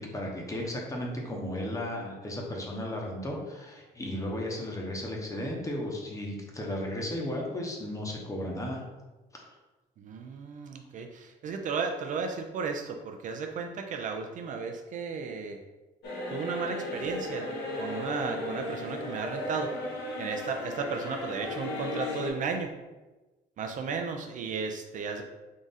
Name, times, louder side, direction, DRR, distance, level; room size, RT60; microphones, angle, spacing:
voice 1, 0.0-8.8 9.3-9.4, left 1 dB, 20° left, -1 dB, 0.8 m, -35 dB
voice 2, 10.0-15.6 16.3-17.5 17.8-19.7 20.2-22.7 23.6-25.2, right 5 dB, 50° right, 4 dB, 0.4 m, -34 dB
sound 1, 16.0-22.3, left 1 dB, 80° left, 1.2 m, -35 dB
3.8 x 2.4 x 4.0 m, 1.2 s
cardioid pair, 110°, 17 cm